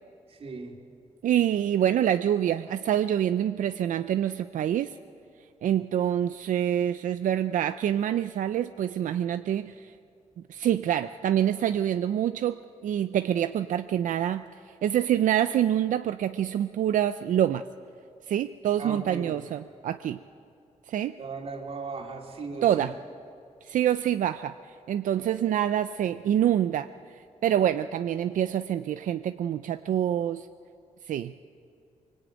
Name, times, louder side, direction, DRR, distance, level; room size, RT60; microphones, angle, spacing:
voice 1, 0.3-0.8 18.8-19.4 21.2-22.9, right 4 dB, 50° right, 2 dB, 3.2 m, -37 dB
voice 2, 1.2-4.9 5.6-9.9 10.5-12.6 12.8-14.4 14.8-17.6 18.3-20.2 20.9-21.1 22.6-22.9 23.6-26.9 27.4-30.5 31.1-31.3, right 10 dB, 85° right, 11 dB, 0.5 m, -26 dB
24.0 x 23.5 x 9.0 m, 2.5 s
wide cardioid pair, 145°, 13 cm